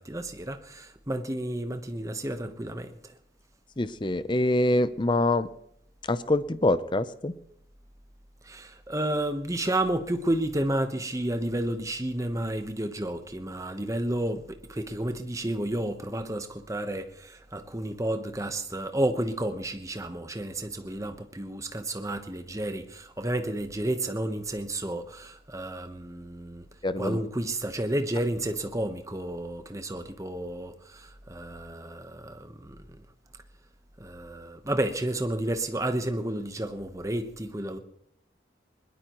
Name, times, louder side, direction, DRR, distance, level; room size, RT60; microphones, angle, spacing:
voice 1, 0.0-3.1 8.4-26.7 27.0-33.0 34.0-37.8, right 1 dB, 20° right, 1.1 m, -31 dB
voice 2, 3.8-5.5 6.1-7.3 26.8-27.2, left 2 dB, 25° left, 0.6 m, -25 dB
22.0 x 21.0 x 3.1 m
head